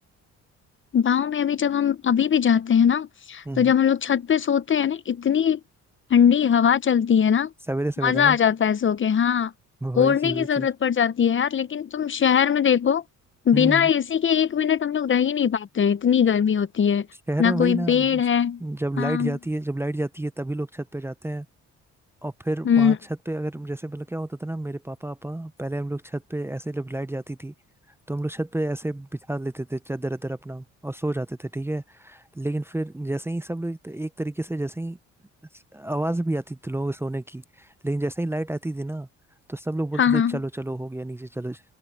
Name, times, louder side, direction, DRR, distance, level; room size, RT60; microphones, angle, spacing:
voice 1, 0.9-5.6 6.1-7.5 8.0-9.5 9.9-13.0 13.5-17.1 17.4-18.6 19.0-19.4 22.6-23.0 40.0-40.4, left 8 dB, 40° left, 0.9 m, -21 dB
voice 2, 7.7-8.4 9.8-10.7 13.5-13.9 17.3-18.2 18.6-21.5 22.2-23.0 23.3-27.5 28.1-35.0 35.7-39.1 39.5-41.6, right 1 dB, 10° right, 0.7 m, -30 dB
cardioid pair, 90°, 30 cm